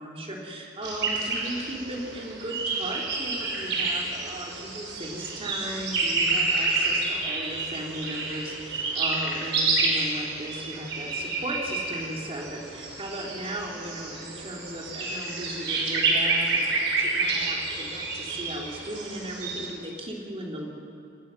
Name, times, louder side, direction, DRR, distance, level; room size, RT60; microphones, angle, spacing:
voice 1, 0.0-20.7, right 1 dB, 30° right, -2 dB, 3.5 m, -37 dB
sound 1, 0.8-19.7, right 3 dB, 70° right, 5.0 m, -29 dB
26.5 x 19.0 x 6.0 m, 2.5 s
head